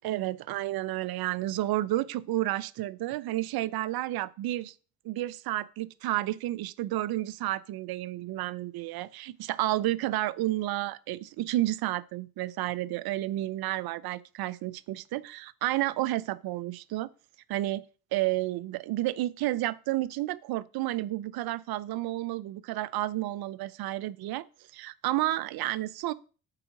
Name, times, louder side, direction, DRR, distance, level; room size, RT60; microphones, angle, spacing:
voice 1, 0.0-4.7 5.0-17.1 17.5-17.8 18.1-24.4 24.7-26.1, right 15 dB, 65° right, 0.6 m, -31 dB
6.8 x 4.7 x 5.9 m
hypercardioid pair, 45°, 41 cm